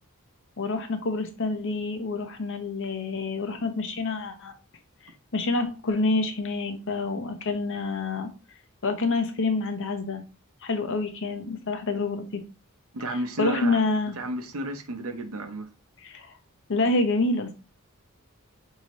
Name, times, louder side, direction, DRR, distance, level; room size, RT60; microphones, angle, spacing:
voice 1, 0.6-4.5 5.3-8.3 8.8-10.2 10.6-12.2 13.4-14.1 16.0-16.3 16.7-17.5, left 3 dB, 60° left, 0.8 m, -27 dB
voice 2, 12.9-13.8 14.2-15.7, equal, 70° right, 0.7 m, -32 dB
5.9 x 2.7 x 3.0 m
head